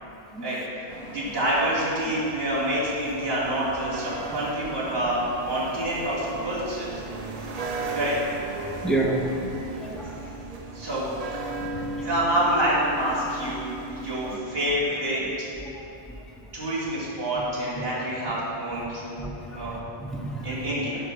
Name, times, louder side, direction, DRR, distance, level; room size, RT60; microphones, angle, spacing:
sound 1, 0.9-14.4, right 3 dB, 40° right, 0.8 m, -36 dB
voice 1, 1.1-7.0 7.9-8.2 10.7-15.2 16.5-19.8 20.4-21.0, right 1 dB, 65° right, -10 dB, 2.9 m, -27 dB
voice 2, 8.6-9.4 9.8-10.2 10.5-10.6 14.2-14.4 15.7-15.8 19.2-20.5, right 2 dB, ahead, -2 dB, 0.9 m, -30 dB
9.8 x 5.1 x 6.3 m, 2.8 s
omnidirectional pair, 1.1 m